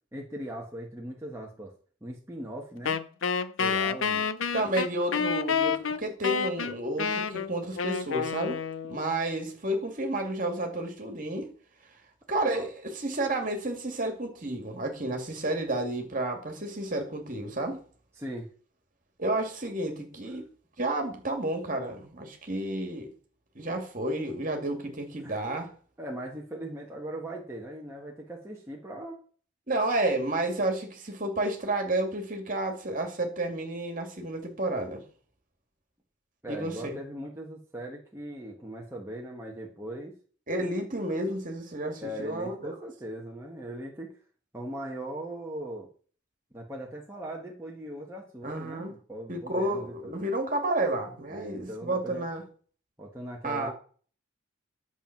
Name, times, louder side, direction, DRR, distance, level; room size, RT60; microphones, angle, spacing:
voice 1, 0.1-1.7 2.0-3.0 3.6-4.3 12.5-12.7 18.2-18.5 25.2-25.4 26.0-29.2 36.4-40.1 42.0-44.2 44.5-45.9 46.5-50.1 51.3-52.3 53.0-53.7, right 1 dB, 15° right, 1.4 m, -39 dB
Wind instrument woodwind instrument, 2.8-9.1, left 6 dB, 70° left, 0.7 m, -29 dB
voice 2, 4.5-8.6 8.9-11.5 12.3-17.8 19.2-20.5 20.8-23.1 23.5-25.7 29.7-35.0 36.5-37.0 40.5-42.8 48.4-48.9 49.3-52.4 53.4-53.7, right 1 dB, 40° right, 2.3 m, -31 dB
10.0 x 7.5 x 5.9 m
head